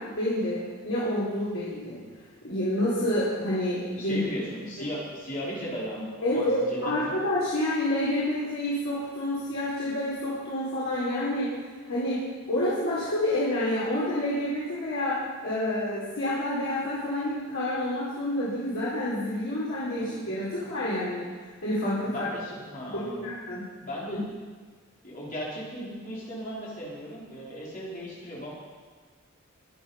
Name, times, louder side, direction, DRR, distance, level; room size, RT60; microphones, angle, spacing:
voice 1, 0.0-2.0 2.4-4.3 6.2-11.5 11.9-12.2 12.5-21.3 21.6-22.3 22.9-23.6 24.1-24.2, left 1 dB, 70° left, -9 dB, 4.0 m, -28 dB
voice 2, 4.0-7.1 20.0-20.1 20.5-20.6 22.0-23.3 23.8-24.2 25.0-28.5, equal, 40° left, -6 dB, 4.6 m, -36 dB
23.0 x 8.1 x 5.7 m, 1.5 s
head